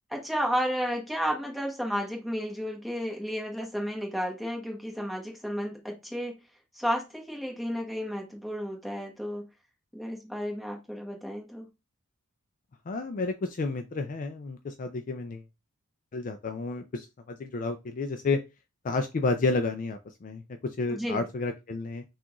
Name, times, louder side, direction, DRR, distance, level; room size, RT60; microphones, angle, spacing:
voice 1, 0.1-6.4 6.7-9.5 9.9-11.7 20.9-21.3, equal, ahead, 0 dB, 1.1 m, -32 dB
voice 2, 12.9-15.4 16.1-18.4 18.8-22.0, left 3 dB, 35° left, 7 dB, 0.4 m, -31 dB
6.0 x 2.4 x 2.9 m, 0.25 s
head